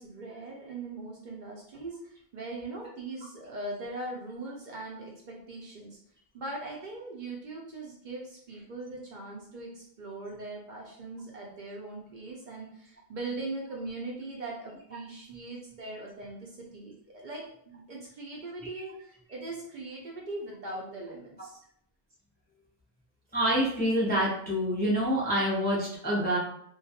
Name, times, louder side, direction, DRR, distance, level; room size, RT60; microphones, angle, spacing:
voice 1, 0.0-6.0 6.3-21.6, right 2 dB, 60° right, -2 dB, 0.6 m, -40 dB
voice 2, 23.3-26.4, equal, 15° left, -6 dB, 0.4 m, -26 dB
2.3 x 2.2 x 2.7 m, 0.68 s
omnidirectional pair, 1.0 m